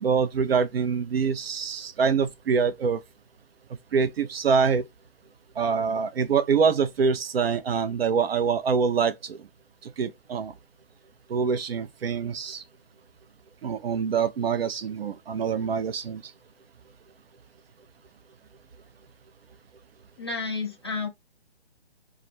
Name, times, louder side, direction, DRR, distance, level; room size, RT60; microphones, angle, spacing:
voice 1, 0.0-3.0 3.9-4.8 5.6-9.4 9.8-10.5 11.3-12.6 13.6-16.2, right 6 dB, 65° right, 0.4 m, -25 dB
voice 2, 20.2-21.1, left 4 dB, 25° left, 0.6 m, -31 dB
2.3 x 2.0 x 2.9 m
hypercardioid pair, 175°, 32 cm